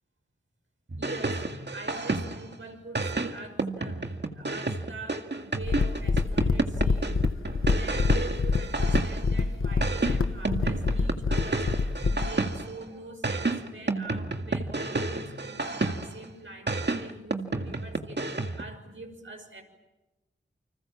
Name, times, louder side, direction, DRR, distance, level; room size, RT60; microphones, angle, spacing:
sound 1, 0.9-2.5 2.9-9.4 9.8-12.8 13.2-16.2 16.7-18.7, right 3 dB, 55° right, 2.0 m, -30 dB
voice 1, 1.0-18.3 18.5-19.6, right 2 dB, 75° right, 3 dB, 6.3 m, -44 dB
sound 2, 5.6-12.3, left 4 dB, 80° left, 1.1 m, -26 dB
29.5 x 25.5 x 7.4 m, 1.0 s
wide cardioid pair, 45°, 21 cm